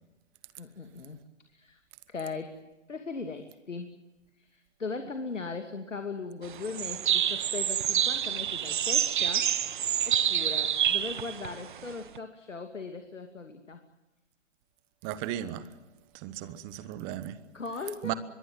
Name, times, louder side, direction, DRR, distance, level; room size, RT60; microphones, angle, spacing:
voice 1, 0.6-1.2 1.5-1.8 2.1-2.6 2.9-3.9 4.4-9.5 10.0-13.8 17.5-18.2, left 4 dB, 75° left, 6 dB, 2.6 m, -39 dB
sound 1, 6.4-12.2, right 9 dB, 40° right, 1.3 m, -27 dB
voice 2, 15.0-15.7 16.1-17.4 18.0-18.1, right 13 dB, 15° right, 15 dB, 1.0 m, -35 dB
24.0 x 22.5 x 7.6 m, 1.1 s
figure-of-eight pair, 140°, 38 cm